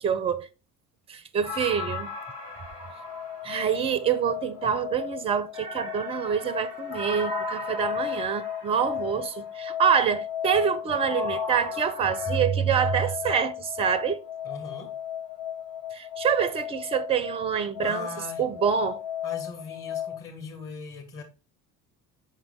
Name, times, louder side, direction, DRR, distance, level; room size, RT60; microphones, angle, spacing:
voice 1, 0.0-0.5 1.1-2.1 3.4-14.2 15.9-18.1 18.4-19.0, right 7 dB, 15° right, 0.4 m, -26 dB
sound 1, 1.4-4.2 5.5-9.4 11.0-12.4, left 1 dB, 85° left, 1.7 m, -38 dB
sound 2, 2.1-20.2, left 10 dB, 60° left, 1.3 m, -35 dB
voice 2, 14.4-14.9 17.8-18.5 19.2-21.2, left 5 dB, 40° left, 2.1 m, -39 dB
5.8 x 4.4 x 3.8 m
figure-of-eight pair, 60°, 47 cm